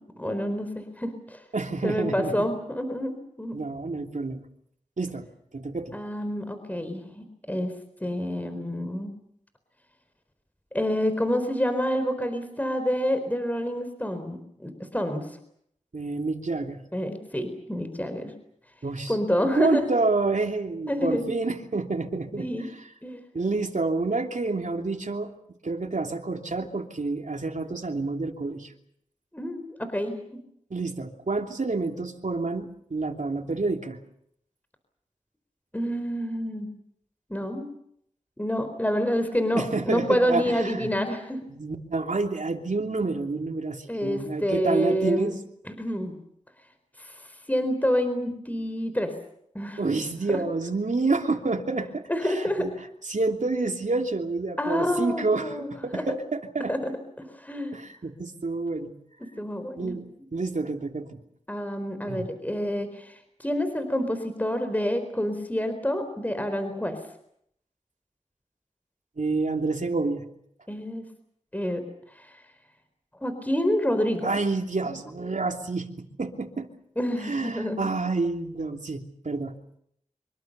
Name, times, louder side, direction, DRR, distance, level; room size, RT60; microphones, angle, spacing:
voice 1, 0.2-1.4 1.8-3.1 3.4-3.6 5.9-7.7 8.0-9.1 10.7-15.3 16.9-18.3 19.1-20.0 20.9-21.3 22.4-22.7 23.0-23.2 29.3-30.2 35.7-36.7 37.3-37.7 38.4-41.4 43.9-45.3 45.7-46.2 47.0-49.1 49.5-49.8 50.3-50.4 52.1-52.7 54.6-55.7 55.9-56.1 56.7-56.9 57.2-57.8 59.2-59.9 61.5-67.0 70.7-71.0 71.5-71.8 72.2-72.4 73.2-74.3 77.0-77.8, equal, 10° left, 9 dB, 4.4 m, -28 dB
voice 2, 1.5-2.5 3.5-4.4 5.0-5.3 5.5-6.0 15.9-16.8 18.8-19.2 19.4-22.5 23.3-25.3 25.6-28.7 30.7-34.0 39.5-40.9 41.5-45.3 49.8-52.7 53.1-56.7 57.7-58.9 59.8-61.2 62.1-62.3 69.2-70.2 74.2-76.7 77.2-79.6, right 3 dB, 75° right, 3 dB, 3.0 m, -28 dB
26.0 x 24.0 x 6.9 m, 0.71 s
wide cardioid pair, 45°, 13 cm